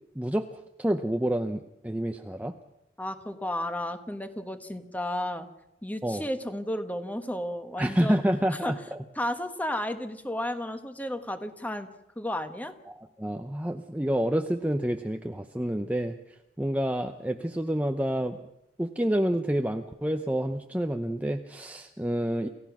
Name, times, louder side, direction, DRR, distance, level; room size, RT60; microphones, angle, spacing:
voice 1, 0.1-2.5 6.0-6.2 7.8-9.0 12.9-18.4 18.8-22.5, right 1 dB, 10° right, 5 dB, 0.7 m, -28 dB
voice 2, 3.0-5.5 5.8-8.2 8.6-8.7 9.2-11.9 12.2-12.7, left 1 dB, 10° left, 8 dB, 1.3 m, -33 dB
28.5 x 15.5 x 6.1 m, 0.85 s
head